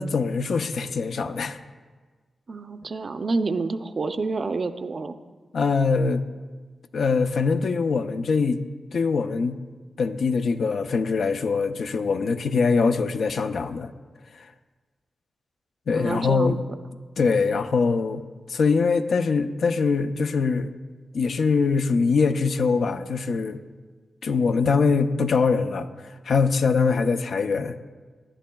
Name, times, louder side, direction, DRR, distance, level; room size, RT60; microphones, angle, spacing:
voice 1, 0.0-1.6 5.5-6.2 6.9-8.6 8.9-9.6 10.0-13.9 14.4-14.5 15.9-16.6 17.2-18.2 18.5-20.7 21.1-23.6 24.2-27.8, left 4 dB, 70° left, 8 dB, 0.5 m, -23 dB
voice 2, 2.5-5.2 15.9-16.6, right 3 dB, 45° right, 9 dB, 0.5 m, -28 dB
18.5 x 11.5 x 2.3 m, 1.4 s
wide cardioid pair, 120°, 0 cm